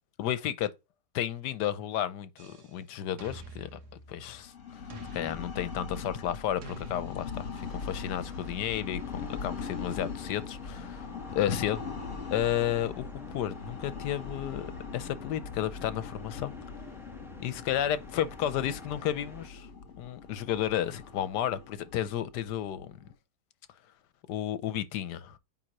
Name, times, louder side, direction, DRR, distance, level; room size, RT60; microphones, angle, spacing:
voice 1, 0.2-0.7 1.1-3.8 4.1-4.5 5.1-11.8 12.3-16.5 17.4-19.7 20.0-23.0 24.3-25.4, left 11 dB, 80° left, 1.3 m, -32 dB
sound 1, 2.4-2.8 3.2-4.5 4.9-6.0 6.6-7.7, right 1 dB, 70° right, 1.7 m, -47 dB
sound 2, 4.4-23.1, left 5 dB, 55° left, 1.9 m, -41 dB
sound 3, 7.6-19.5, equal, 5° right, 0.4 m, -50 dB
9.1 x 3.8 x 3.0 m
omnidirectional pair, 1.8 m